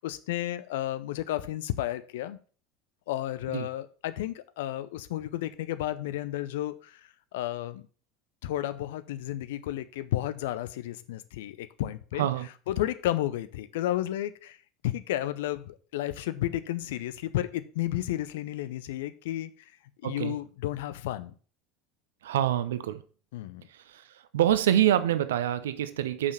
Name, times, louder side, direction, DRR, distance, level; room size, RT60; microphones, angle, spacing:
voice 1, 0.0-2.4 3.1-7.8 8.4-12.3 12.7-14.6 14.8-19.5 20.0-21.3 23.3-23.7, left 13 dB, 65° left, 0.6 m, -32 dB
voice 2, 20.0-20.3 22.2-23.0 23.9-24.0 24.3-26.3, right 11 dB, 70° right, 0.6 m, -26 dB
6.9 x 5.7 x 5.8 m
figure-of-eight pair, 70°, 0 cm